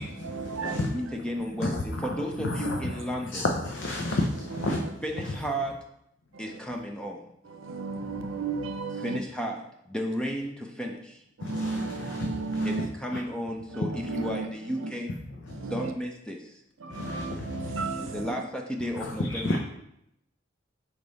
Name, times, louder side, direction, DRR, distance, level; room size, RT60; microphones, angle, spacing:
voice 1, 0.0-1.2 2.6-3.0 4.2-5.2 6.3-6.6 7.4-9.2 11.4-13.2 13.7-14.9 15.5-15.9 16.8-18.3, right 4 dB, 85° right, 6 dB, 0.6 m, -35 dB
voice 2, 0.7-3.4 5.0-5.7 6.4-7.2 9.0-9.6 9.9-10.9 12.6-15.1 15.7-16.4 18.1-19.6, equal, 5° left, 1 dB, 0.5 m, -33 dB
voice 3, 2.5-2.8 3.3-4.8 11.4-11.7 16.9-17.4 19.3-19.6, left 2 dB, 65° left, 1 dB, 0.7 m, -29 dB
5.2 x 4.6 x 4.0 m, 0.79 s
head